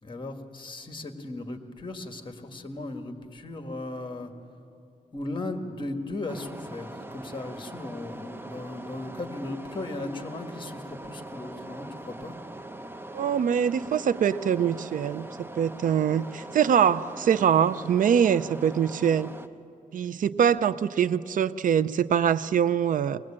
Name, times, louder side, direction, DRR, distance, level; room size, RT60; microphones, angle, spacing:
voice 1, 0.0-4.3 5.1-12.4, left 2 dB, 35° left, 6 dB, 1.8 m, -37 dB
sound 1, 6.3-19.5, right 1 dB, 15° right, 0.8 m, -42 dB
voice 2, 13.1-19.3 19.9-23.2, right 8 dB, 70° right, 16 dB, 0.5 m, -24 dB
21.5 x 20.5 x 8.7 m, 2.7 s
wide cardioid pair, 100°, 14 cm